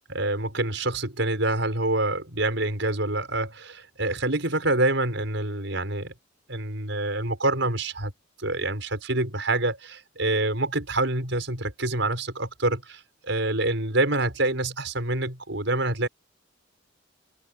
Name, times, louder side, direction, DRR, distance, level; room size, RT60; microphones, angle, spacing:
voice 1, 0.1-6.1 6.5-8.1 8.4-16.1, right 2 dB, 65° right, 6.6 m, -26 dB
head